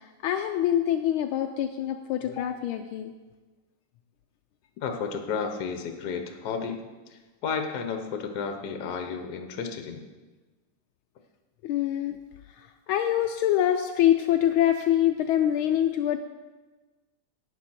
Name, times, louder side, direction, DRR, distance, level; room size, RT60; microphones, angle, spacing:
voice 1, 0.0-3.1 11.6-12.2 12.6-16.2, left 11 dB, 80° left, 5 dB, 1.4 m, -25 dB
voice 2, 4.8-6.8 7.4-10.0, left 6 dB, 55° left, 5 dB, 1.4 m, -32 dB
11.0 x 9.3 x 4.3 m, 1.3 s
omnidirectional pair, 2.3 m